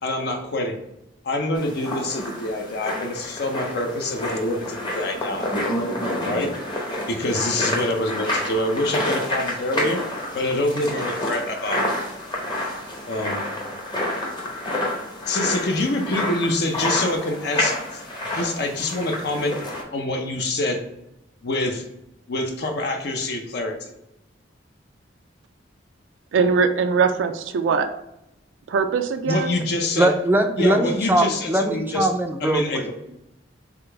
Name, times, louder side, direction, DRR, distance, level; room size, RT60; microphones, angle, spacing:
voice 1, 0.0-0.8 1.2-5.5 6.2-6.5 7.1-10.0 10.3-11.9 13.1-13.4 15.3-18.0 18.3-19.6 19.9-20.8 21.4-21.8 22.3-23.9 29.3-30.1 30.6-32.1 32.4-32.8, left 1 dB, 60° left, 4 dB, 0.5 m, -25 dB
sound 1, 1.6-19.8, left 1 dB, 25° left, 0.8 m, -29 dB
voice 2, 26.3-27.9 28.7-29.6, right 5 dB, 90° right, 7 dB, 0.4 m, -21 dB
voice 3, 30.0-32.9, right 1 dB, 10° right, 6 dB, 0.3 m, -21 dB
3.8 x 3.3 x 3.3 m, 0.88 s
head